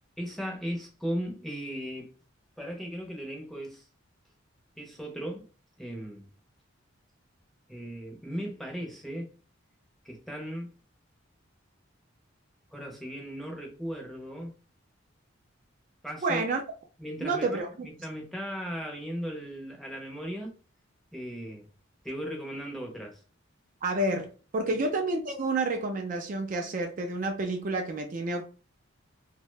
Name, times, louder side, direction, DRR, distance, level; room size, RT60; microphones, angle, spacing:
voice 1, 0.2-2.1 2.6-3.8 4.8-5.5 5.8-6.3 7.7-9.3 10.0-10.7 12.7-14.5 16.0-16.4 17.0-20.6 21.1-21.7 22.0-23.2 24.6-24.9, equal, ahead, 0.6 m, -37 dB
voice 2, 16.2-16.6 17.2-17.9 23.8-28.4, right 2 dB, 40° right, 0.3 m, -29 dB
2.7 x 2.1 x 3.1 m
head